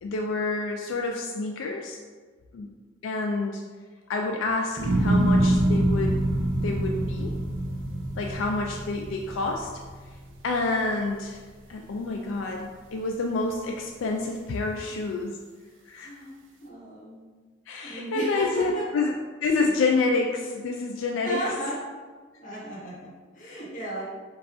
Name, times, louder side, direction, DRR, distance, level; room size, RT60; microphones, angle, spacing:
voice 1, 0.0-2.0 2.5-2.7 3.0-3.6 4.1-6.2 6.5-7.3 8.1-9.7 10.4-11.4 11.7-15.4 15.9-16.1 17.7-19.1 19.4-21.4, left 3 dB, 85° left, 1 dB, 0.4 m, -28 dB
sound 1, 4.8-11.1 11.5-12.1, right 1 dB, 80° right, 0.6 m, -25 dB
voice 2, 16.0-16.3 16.6-17.2 17.8-18.9 21.2-21.8 22.4-24.0, equal, 45° left, -7 dB, 1.4 m, -34 dB
4.7 x 2.4 x 3.7 m, 1.4 s
head